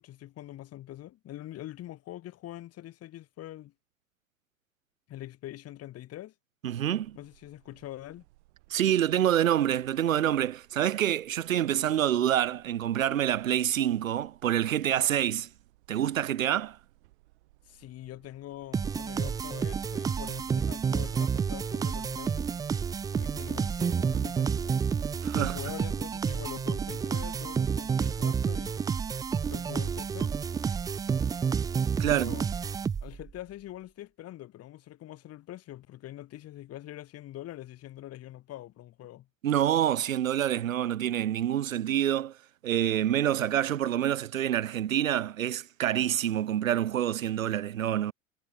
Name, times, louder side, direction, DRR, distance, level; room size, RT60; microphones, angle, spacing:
voice 1, 0.0-3.7 5.1-6.3 7.1-8.2 17.7-22.4 23.1-24.8 25.3-28.8 29.5-30.3 32.1-32.5 33.0-39.3, left 14 dB, 35° left, 4.9 m, -44 dB
voice 2, 6.6-7.2 8.7-15.5 15.9-16.8 25.2-25.6 32.0-32.3 39.4-42.4 42.6-48.1, right 11 dB, 80° right, 0.6 m, -27 dB
sound 1, 6.8-22.5, right 20 dB, 55° right, 4.8 m, -61 dB
sound 2, 18.7-33.3, right 6 dB, 10° right, 0.4 m, -30 dB
figure-of-eight pair, 85°, 40 cm